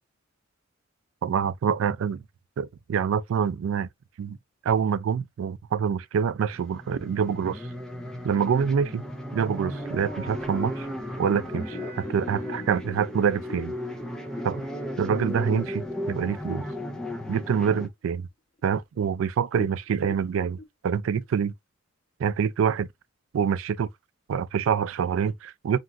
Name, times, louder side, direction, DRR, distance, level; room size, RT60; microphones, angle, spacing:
voice 1, 1.2-2.2 2.6-3.9 4.2-4.4 4.6-7.7 8.2-9.0 9.3-10.9 11.2-13.7 14.4-14.6 15.0-16.6 17.3-18.3 18.6-21.5 22.2-22.9 23.3-23.9 24.3-25.8, right 7 dB, 70° right, 0.3 m, -26 dB
sound 1, 6.5-17.9, left 1 dB, 5° left, 0.5 m, -35 dB
Wind instrument woodwind instrument, 9.0-15.8, right 3 dB, 30° right, 1.1 m, -48 dB
sound 2, 11.6-16.0 16.4-16.5 16.9-17.4 17.8-17.9 18.6-18.7 18.9-19.1 19.5-20.6, left 1 dB, 30° left, 0.9 m, -46 dB
2.9 x 2.4 x 2.5 m
head